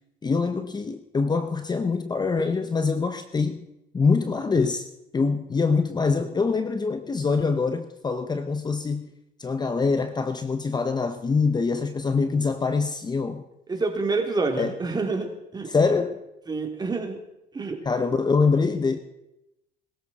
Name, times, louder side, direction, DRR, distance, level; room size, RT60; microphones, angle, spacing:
voice 1, 0.2-3.6 3.9-4.9 5.1-9.1 9.4-13.4 14.6-14.7 15.7-16.2 17.8-19.0, left 4 dB, 25° left, 0.9 m, -24 dB
voice 2, 13.7-15.7 16.5-17.2 17.5-17.8, right 3 dB, 25° right, 3.0 m, -27 dB
22.0 x 14.0 x 4.2 m
cardioid pair, 110°, 17 cm